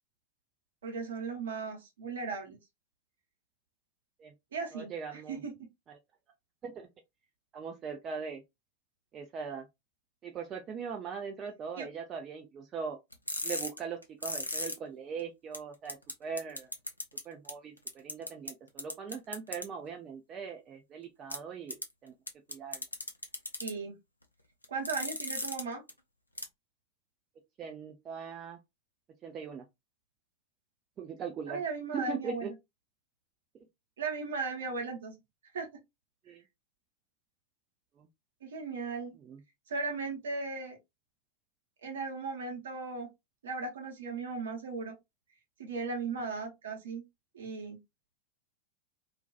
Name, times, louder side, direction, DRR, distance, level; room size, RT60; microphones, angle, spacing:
voice 1, 0.8-2.6 4.5-5.5 11.7-11.9 23.6-23.9 24.7-25.8 31.5-32.5 34.0-35.1 35.5-35.7 38.4-39.2 39.7-40.8 41.8-43.1 43.4-44.9 45.6-47.0 47.3-47.8, right 4 dB, 65° right, 0.9 m, -37 dB
voice 2, 4.7-5.4 5.9-6.0 6.6-6.9 7.5-8.4 9.1-9.7 10.2-13.0 13.4-16.7 17.2-22.1 22.5-22.8 27.6-28.6 29.2-29.7 31.0-31.6 31.9-32.5 36.3-36.4 38.0-38.1 39.2-39.4, right 6 dB, 30° right, 0.4 m, -40 dB
sound 1, 13.1-14.7 15.2-15.3 15.5-15.6 15.9-16.1 16.4-17.2 17.5-17.6 17.9-18.5 18.8-19.6 21.3-21.4 21.7-21.8 22.3-23.7 24.6-25.6 25.9-26.0 26.4-26.5, left 1 dB, 85° left, 0.5 m, -35 dB
2.4 x 2.3 x 2.3 m
figure-of-eight pair, 90°, 0 cm